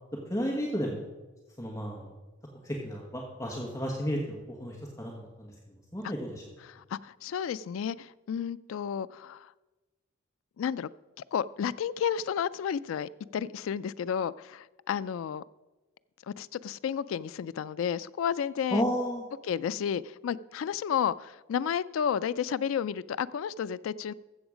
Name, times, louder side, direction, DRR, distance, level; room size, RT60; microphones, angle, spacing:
voice 1, 0.3-1.0 1.6-2.1 2.6-5.5 5.9-6.4 18.7-19.2, equal, 15° left, -1 dB, 1.4 m, -32 dB
voice 2, 6.6-9.5 10.6-10.9 11.3-15.4 16.3-18.8 19.5-24.1, left 8 dB, 80° left, 16 dB, 0.3 m, -32 dB
14.5 x 7.1 x 5.0 m, 1.1 s
head